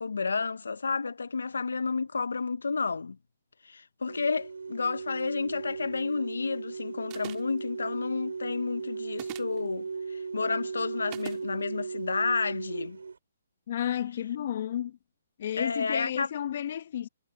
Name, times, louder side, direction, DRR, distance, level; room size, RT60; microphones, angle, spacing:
voice 1, 0.0-3.2 3.6-13.0 15.6-16.3, left 4 dB, 85° left, 0.7 m, -31 dB
sound 1, 4.1-13.2, right 5 dB, 85° right, 4.3 m, -37 dB
sound 2, 7.1-7.6 9.1-9.6 11.1-11.4, right 29 dB, 30° right, 2.8 m, -42 dB
voice 2, 13.7-15.0 15.4-17.1, left 10 dB, 50° left, 0.9 m, -32 dB
hypercardioid pair, 150°, 0 cm